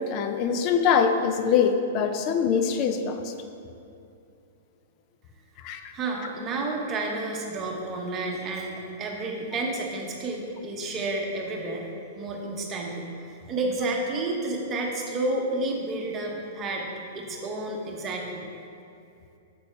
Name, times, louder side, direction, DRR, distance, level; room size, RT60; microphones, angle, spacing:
voice 1, 0.0-3.3 5.6-5.9, left 6 dB, 40° left, 7 dB, 0.5 m, -23 dB
voice 2, 5.9-11.8 12.1-16.9 17.1-18.4, right 2 dB, 25° right, 0 dB, 1.0 m, -30 dB
6.9 x 4.3 x 4.5 m, 2.6 s
hypercardioid pair, 135°, 0 cm